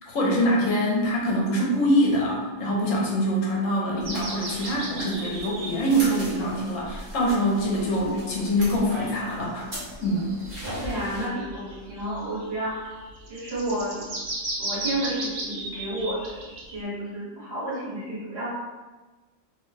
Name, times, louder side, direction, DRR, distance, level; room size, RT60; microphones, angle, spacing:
voice 1, 0.0-9.7 10.0-10.3, equal, 75° left, -3 dB, 1.1 m, -24 dB
sound 1, 4.0-11.3, equal, 35° right, 1.0 m, -38 dB
sound 2, 4.0-6.3 6.8-6.9 7.8-7.9 9.9-16.8, right 2 dB, 85° right, 1.2 m, -36 dB
voice 2, 10.8-12.9 13.3-14.0 14.6-16.4 16.7-18.5, right 1 dB, 55° right, -9 dB, 1.4 m, -31 dB
2.9 x 2.1 x 3.2 m, 1.3 s
omnidirectional pair, 1.4 m